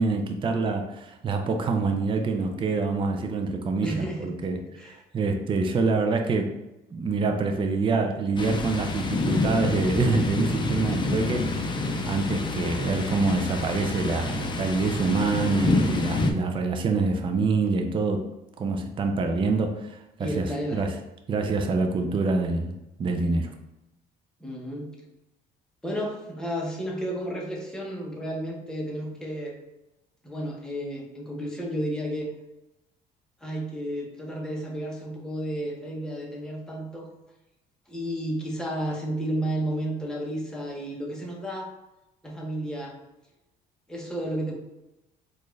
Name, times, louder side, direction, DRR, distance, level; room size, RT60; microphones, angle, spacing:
voice 1, 0.0-6.6 6.9-11.7 12.1-18.2 18.6-20.5 20.7-20.9 21.3-23.5, right 3 dB, 30° right, 4 dB, 0.5 m, -26 dB
voice 2, 3.8-4.3 4.7-5.0 20.2-20.8 24.4-24.9 25.8-29.6 30.2-32.3 33.4-37.1 37.9-41.7 42.2-43.0 43.9-44.5, right 1 dB, 5° left, -2 dB, 1.0 m, -32 dB
Thunder, 8.4-16.3, left 3 dB, 30° left, 0.5 m, -28 dB
4.1 x 2.5 x 3.2 m, 0.96 s
cardioid pair, 110°, 17 cm